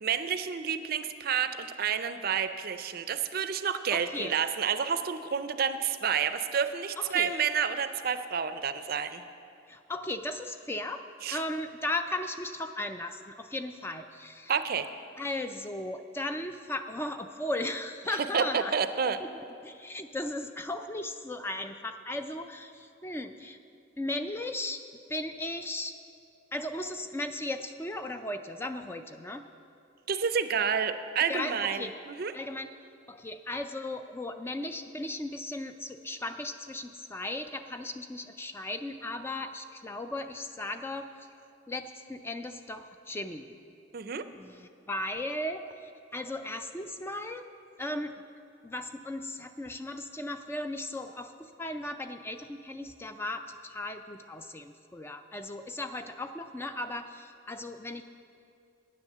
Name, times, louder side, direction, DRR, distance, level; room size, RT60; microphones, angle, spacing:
voice 1, 0.0-9.2 11.2-11.4 14.5-14.9 18.3-19.2 30.1-32.3 43.9-44.3, right 7 dB, 50° right, 11 dB, 0.5 m, -29 dB
voice 2, 3.9-4.3 7.0-7.3 9.7-14.5 15.2-18.7 19.2-19.3 19.6-23.6 24.0-24.8 25.1-25.9 26.5-29.4 31.3-31.9 32.3-32.7 33.1-41.3 41.7-43.6 44.3-47.4 47.8-48.1 48.6-58.0, left 1 dB, 10° left, 8 dB, 0.4 m, -36 dB
10.0 x 9.1 x 6.7 m, 2.5 s
head